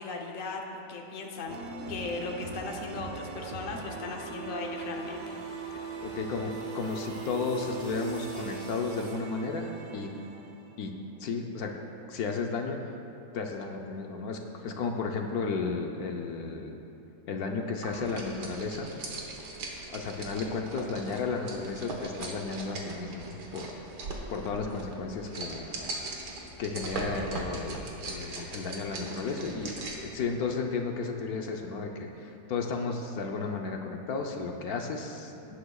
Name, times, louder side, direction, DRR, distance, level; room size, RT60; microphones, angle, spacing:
voice 1, 0.0-1.6 1.9-5.3, left 3 dB, 35° left, 0 dB, 0.9 m, -37 dB
sound 1, 1.5-11.3, right 4 dB, 60° right, 0.5 m, -40 dB
sound 2, 4.2-10.1, right 2 dB, 30° right, 1.3 m, -52 dB
voice 2, 6.0-10.1 10.8-10.9 11.2-11.7 12.1-13.0 13.3-16.8 17.3-18.9 19.9-23.9 24.3-25.7 26.6-35.6, left 4 dB, 70° left, 2 dB, 1.2 m, -33 dB
sound 3, 17.8-30.1, right 2 dB, 90° right, 1.8 m, -39 dB
18.0 x 9.7 x 2.3 m, 2.8 s
omnidirectional pair, 1.7 m